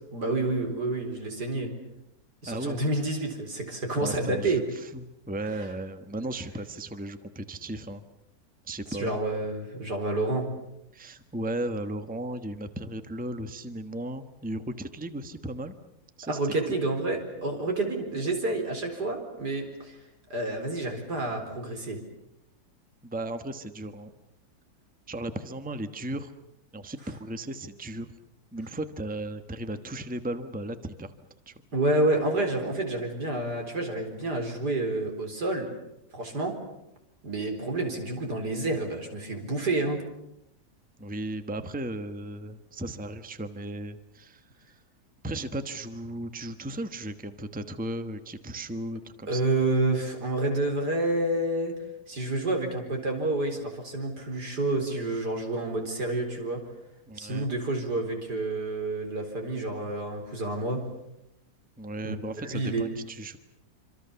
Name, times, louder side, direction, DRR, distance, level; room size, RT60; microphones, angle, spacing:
voice 1, 0.1-1.7 2.4-4.6 8.9-10.5 16.3-20.0 20.3-22.0 31.7-35.7 36.1-36.6 37.2-40.0 49.3-51.7 52.1-56.6 57.2-60.9 62.0-63.0, right 2 dB, 85° right, 4 dB, 4.9 m, -29 dB
voice 2, 2.5-2.8 4.0-4.6 4.9-8.0 8.7-9.1 10.9-15.7 16.2-16.4 23.0-24.1 25.1-26.3 26.7-28.1 28.5-31.1 31.5-31.6 41.0-44.4 45.2-49.4 57.1-57.5 61.8-63.4, right 1 dB, 5° right, 9 dB, 1.2 m, -35 dB
26.0 x 26.0 x 7.0 m, 0.84 s
omnidirectional pair, 1.7 m